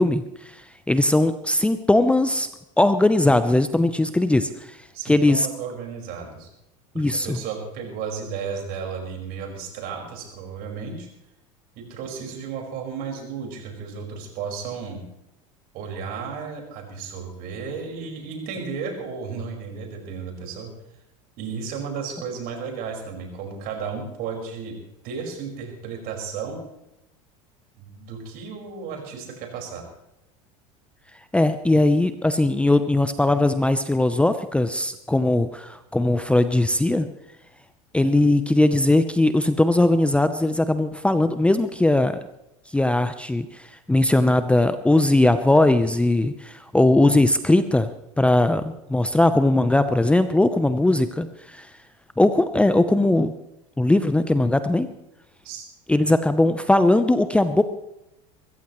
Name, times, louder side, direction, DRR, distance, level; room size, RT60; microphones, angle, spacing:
voice 1, 0.0-2.5 2.8-4.8 5.0-5.5 7.0-7.4 31.3-37.1 37.9-42.2 42.7-47.9 48.2-51.7 52.2-53.3 53.8-54.9 55.9-57.6, left 2 dB, 5° left, 11 dB, 0.7 m, -19 dB
voice 2, 4.9-6.5 6.9-11.1 11.7-15.0 15.7-20.7 21.4-24.8 25.0-26.6 27.8-29.8 55.4-55.6, right 6 dB, 55° right, 1 dB, 5.1 m, -33 dB
22.5 x 15.0 x 3.1 m, 0.87 s
hypercardioid pair, 90°, 18 cm